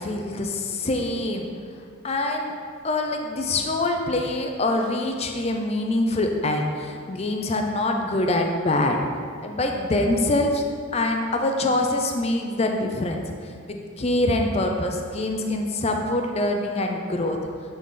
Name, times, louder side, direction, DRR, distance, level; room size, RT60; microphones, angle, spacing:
voice 1, 0.0-1.5 2.0-2.5 2.8-9.1 9.4-10.6 10.9-17.4, left 2 dB, 30° left, 3 dB, 0.5 m, -24 dB
9.3 x 4.1 x 3.8 m, 2.1 s
head